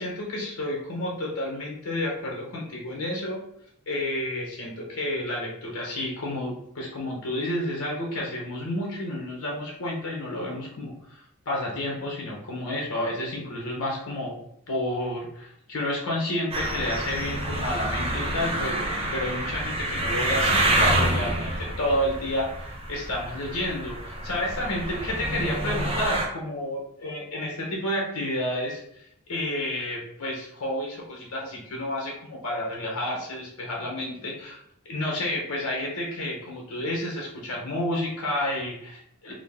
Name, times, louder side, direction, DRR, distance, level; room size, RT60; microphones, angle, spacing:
voice 1, 0.0-3.4 3.9-14.4 14.7-34.6 34.9-39.3, left 1 dB, 80° left, -2 dB, 1.0 m, -30 dB
sound 1, 16.5-26.3, right 1 dB, 25° right, 0.6 m, -27 dB
3.7 x 2.1 x 3.6 m, 0.72 s
head